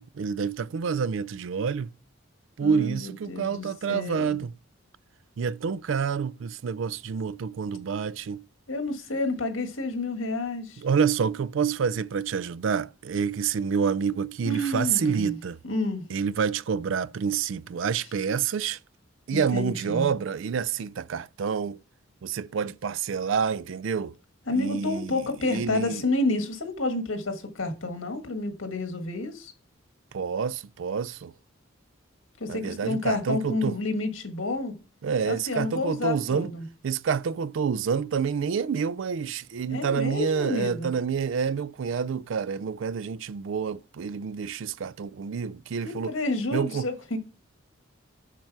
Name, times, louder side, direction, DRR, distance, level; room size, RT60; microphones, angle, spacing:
voice 1, 0.0-1.9 2.6-4.5 5.4-8.4 10.8-15.6 16.1-18.8 19.3-21.8 22.2-24.1 24.5-25.2 25.5-26.0 30.1-31.3 32.5-33.8 35.0-36.5 36.8-46.1 46.5-46.9, right 6 dB, 70° right, 0.4 m, -28 dB
voice 2, 2.6-4.4 8.7-10.8 14.4-15.4 15.6-16.0 19.3-20.1 24.5-29.5 32.4-34.7 35.3-36.6 39.7-40.9 45.8-47.2, left 2 dB, 85° left, 1.5 m, -30 dB
7.5 x 6.6 x 4.7 m
head